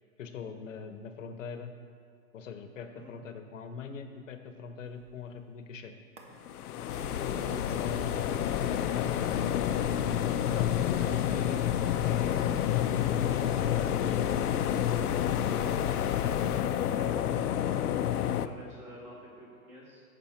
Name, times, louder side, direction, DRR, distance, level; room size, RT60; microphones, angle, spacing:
voice 1, 0.2-1.7 2.3-5.9 7.2-8.2 8.5-9.4 10.3-12.8 13.1-14.2, left 6 dB, 55° left, 7 dB, 1.1 m, -42 dB
sound 1, 4.8-5.8 6.2-6.8 7.4-13.9 15.8-16.0, right 3 dB, 50° right, 1.6 m, -56 dB
sound 2, 6.5-18.5, left 10 dB, 90° left, 0.7 m, -29 dB
sound 3, 6.9-16.6, left 6 dB, 35° left, 0.6 m, -38 dB
voice 2, 10.7-11.5 16.4-20.0, equal, 15° right, -4 dB, 1.8 m, -49 dB
15.5 x 6.8 x 4.4 m, 2.2 s
hypercardioid pair, 180°, 44 cm